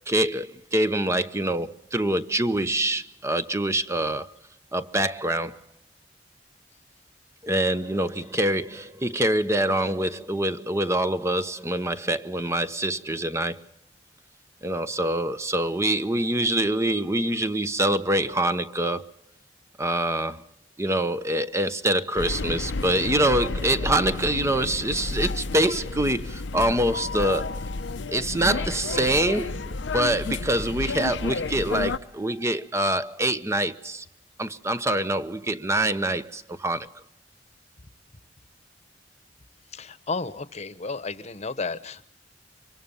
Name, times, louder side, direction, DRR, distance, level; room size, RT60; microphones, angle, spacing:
voice 1, 0.1-4.3 4.7-5.6 7.4-13.6 14.6-19.1 19.8-20.4 20.8-27.6 28.1-34.0 34.4-36.9, right 1 dB, 15° right, 0.9 m, -25 dB
sound 1, 22.2-32.0, left 3 dB, 85° left, 0.8 m, -31 dB
voice 2, 39.7-42.1, left 3 dB, 40° left, 1.1 m, -33 dB
25.0 x 23.5 x 5.5 m
head